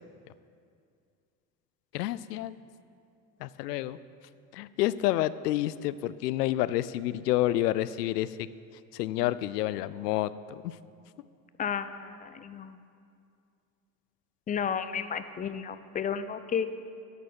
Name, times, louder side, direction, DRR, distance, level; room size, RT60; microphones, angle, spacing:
voice 1, 1.9-2.5 3.4-4.0 4.5-8.5 8.9-10.8, left 14 dB, 75° left, 16 dB, 0.5 m, -29 dB
voice 2, 11.6-12.8 14.5-16.7, left 7 dB, 20° left, 12 dB, 0.4 m, -32 dB
10.5 x 6.9 x 7.2 m, 2.4 s
hypercardioid pair, 70°, 49 cm